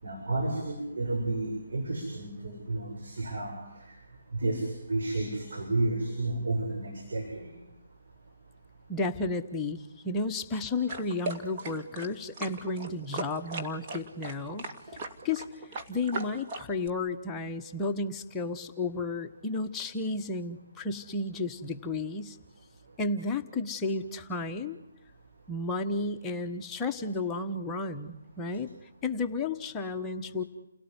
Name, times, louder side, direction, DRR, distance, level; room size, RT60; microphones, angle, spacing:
voice 1, 0.0-4.0 4.3-7.5, right 2 dB, 70° right, 0 dB, 7.3 m, -31 dB
voice 2, 8.9-14.7 15.2-22.4 23.0-24.8 25.5-28.7 29.0-30.4, left 3 dB, 10° left, 3 dB, 1.3 m, -32 dB
sound 1, 10.9-16.9, right 2 dB, 30° right, 2.5 m, -38 dB
30.0 x 17.5 x 9.7 m, 0.92 s
figure-of-eight pair, 145°, 0 cm